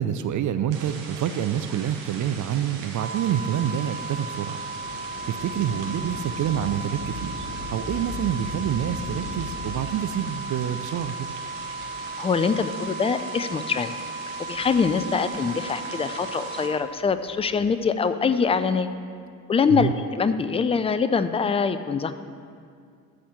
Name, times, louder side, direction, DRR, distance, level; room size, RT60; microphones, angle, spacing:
voice 1, 0.0-4.6 4.9-11.3 19.7-19.9, right 9 dB, 40° right, 10 dB, 0.5 m, -27 dB
sound 1, 0.7-16.7, right 5 dB, 80° right, 1.3 m, -41 dB
sound 2, 3.0-16.8, right 3 dB, 20° right, 1.1 m, -36 dB
Thunder / Rain, 3.5-12.5 13.3-13.4 14.3-15.6 17.1-17.8, left 2 dB, 65° left, 1.7 m, -40 dB
voice 2, 12.2-13.9 14.5-18.9 19.5-22.1, left 5 dB, 15° left, 12 dB, 0.4 m, -24 dB
13.0 x 4.3 x 7.3 m, 2.3 s
hypercardioid pair, 55°, 47 cm